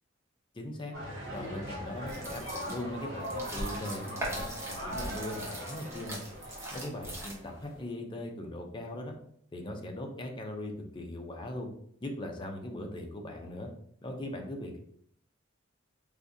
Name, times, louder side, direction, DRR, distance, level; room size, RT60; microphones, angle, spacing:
voice 1, 0.5-1.0 1.3-6.2 6.7-9.2 9.5-11.7 12.0-13.7 14.0-14.8, left 1 dB, 25° left, 2 dB, 0.5 m, -39 dB
sound 1, 0.9-7.8, equal, 60° right, 1.1 m, -41 dB
sound 2, 2.0-7.7, right 1 dB, 15° right, 0.9 m, -40 dB
3.5 x 2.6 x 2.6 m, 0.65 s
head